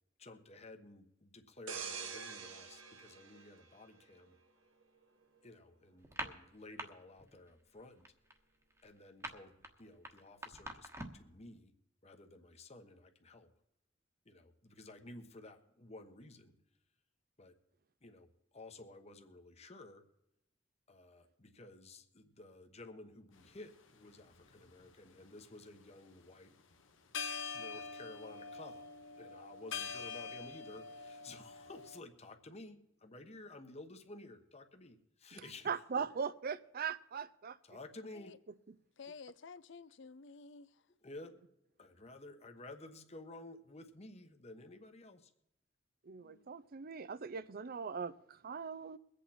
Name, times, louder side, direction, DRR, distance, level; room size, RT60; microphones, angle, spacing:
voice 1, 0.2-4.4 5.4-8.1 8.8-11.7 12.0-13.5 14.2-16.6 17.4-17.5 18.0-18.3 18.5-20.0 20.9-26.5 27.5-28.8 29.2-35.7 35.9-36.0 37.6-38.3 41.0-41.3 41.8-45.3, left 2 dB, 35° left, 6 dB, 1.2 m, -53 dB
sound 1, 1.7-4.3 4.8-5.0, right 6 dB, 75° right, 1.3 m, -46 dB
sound 2, 6.0-6.9 7.2-7.5 7.8-11.3, right 1 dB, 15° right, 1.3 m, -45 dB
sound 3, 23.4-23.6 24.3-25.3 26.7-26.8 27.1-32.0, left 5 dB, 85° left, 1.3 m, -44 dB
voice 2, 35.6-37.6 46.1-49.0, right 6 dB, 50° right, 16 dB, 0.5 m, -40 dB
voice 3, 39.0-40.8 46.2-46.5, left 4 dB, 65° left, 16 dB, 0.6 m, -53 dB
22.5 x 8.4 x 4.3 m, 0.83 s
head